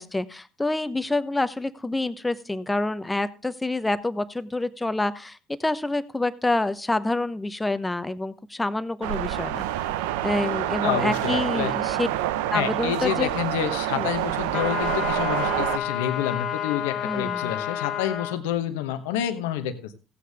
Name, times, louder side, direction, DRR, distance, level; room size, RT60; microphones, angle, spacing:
voice 1, 0.0-9.7 10.2-12.1 12.5-13.3 14.0-14.1 17.0-17.5, left 2 dB, 15° left, 14 dB, 1.0 m, -27 dB
sound 1, 9.0-15.8, right 12 dB, 80° right, 0.6 m, -27 dB
voice 2, 10.8-11.7 12.5-19.9, left 10 dB, 80° left, 10 dB, 1.1 m, -28 dB
sound 2, 14.5-18.4, left 9 dB, 55° left, 1.9 m, -30 dB
15.5 x 8.5 x 3.5 m, 0.33 s
hypercardioid pair, 60°, 0 cm